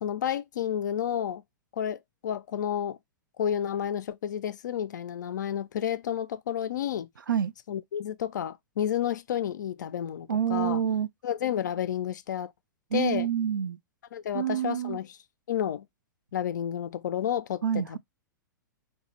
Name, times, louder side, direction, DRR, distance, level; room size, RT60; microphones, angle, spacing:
voice 1, 0.0-1.4 1.7-3.0 3.4-7.1 7.7-10.8 11.2-12.5 12.9-13.3 14.1-15.2 15.5-15.9 16.3-17.6 17.9-18.0, left 9 dB, 65° left, 0.4 m, -31 dB
voice 2, 10.3-11.1 12.9-13.8 14.3-15.0 17.6-18.0, right 9 dB, 80° right, 0.4 m, -27 dB
3.1 x 2.3 x 4.1 m
figure-of-eight pair, 110°, 11 cm